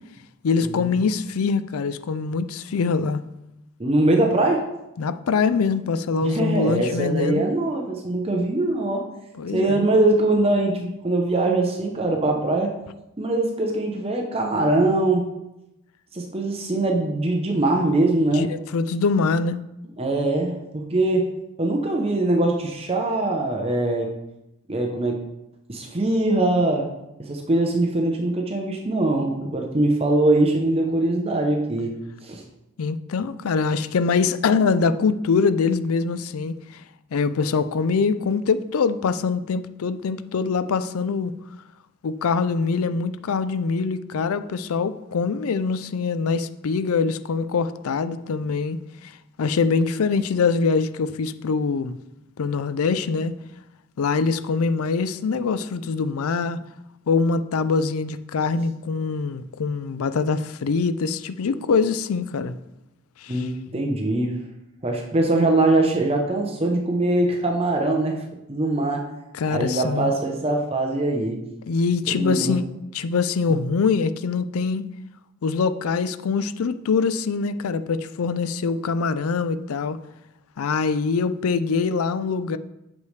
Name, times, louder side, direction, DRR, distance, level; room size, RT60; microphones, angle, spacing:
voice 1, 0.4-3.2 5.0-7.5 9.4-9.8 18.3-19.6 32.8-36.8 37.1-41.3 42.0-48.8 49.0-49.1 49.4-52.0 52.4-53.4 54.0-56.6 57.1-62.6 63.2-63.5 69.3-70.1 71.7-72.6 72.9-74.8 75.4-80.0 80.6-82.6, left 5 dB, 75° left, 0.4 m, -23 dB
voice 2, 3.8-4.6 6.2-9.0 9.5-12.7 13.2-15.3 16.1-18.5 20.0-21.3 21.6-24.1 24.7-25.2 25.7-26.9 27.2-31.9 32.2-32.4 63.3-64.3 64.8-68.2 68.5-69.1 69.5-71.4 72.1-72.6, right 2 dB, 25° right, 0.7 m, -22 dB
8.3 x 6.4 x 3.2 m
head